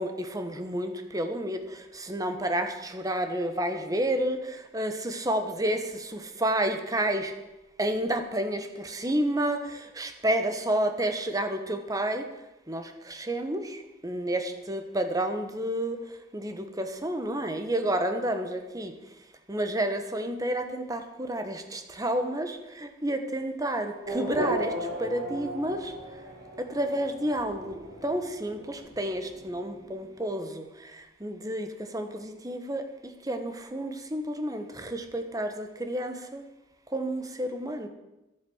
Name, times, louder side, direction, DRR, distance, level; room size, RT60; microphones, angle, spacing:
voice 1, 0.0-1.6 1.9-7.3 7.8-12.2 12.7-13.8 14.0-16.0 16.3-18.9 19.5-24.7 25.0-25.9 26.7-27.7 28.0-30.6 31.2-32.8 33.3-36.4 36.9-37.9, right 1 dB, 20° right, 7 dB, 1.3 m, -30 dB
Race car auto racing / Accelerating revving vroom, 24.0-30.1, equal, 60° right, 5.2 m, -36 dB
12.0 x 10.5 x 8.0 m, 0.98 s
head